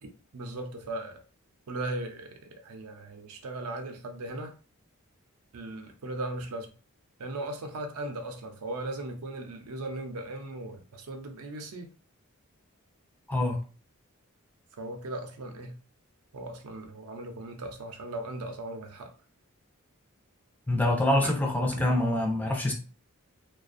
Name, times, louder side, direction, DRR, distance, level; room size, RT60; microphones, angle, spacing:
voice 1, 0.0-1.2 1.7-2.3 2.6-4.5 5.5-6.7 7.2-11.9 14.8-15.7 16.3-19.1 21.2-21.3 21.8-21.9, right 2 dB, 85° right, 0.5 m, -37 dB
voice 2, 13.3-13.6 20.7-22.7, left 1 dB, 10° left, 0.3 m, -25 dB
2.3 x 2.2 x 2.5 m
head